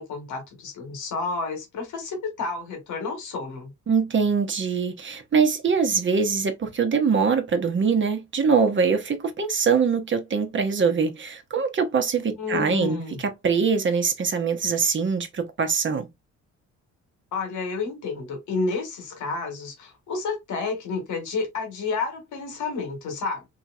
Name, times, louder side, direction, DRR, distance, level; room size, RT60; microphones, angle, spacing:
voice 1, 0.0-3.7 12.4-13.2 17.3-23.5, left 4 dB, 75° left, 1.5 m, -30 dB
voice 2, 3.9-16.1, right 5 dB, 40° right, 0.9 m, -23 dB
2.9 x 2.9 x 2.4 m
cardioid pair, 90°, 30 cm